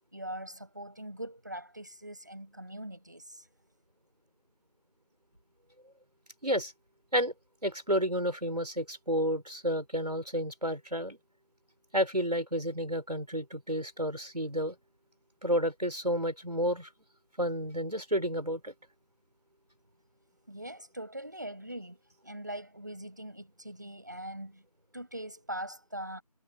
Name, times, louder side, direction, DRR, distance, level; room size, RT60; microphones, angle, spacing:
voice 1, 0.1-3.5 20.5-22.0 22.2-24.6 24.9-26.2, right 1 dB, 30° right, 6.2 m, -42 dB
voice 2, 7.6-11.2 11.9-14.8 15.4-16.9 17.4-18.7, equal, 75° right, 4.4 m, -31 dB
figure-of-eight pair, 175°, 21 cm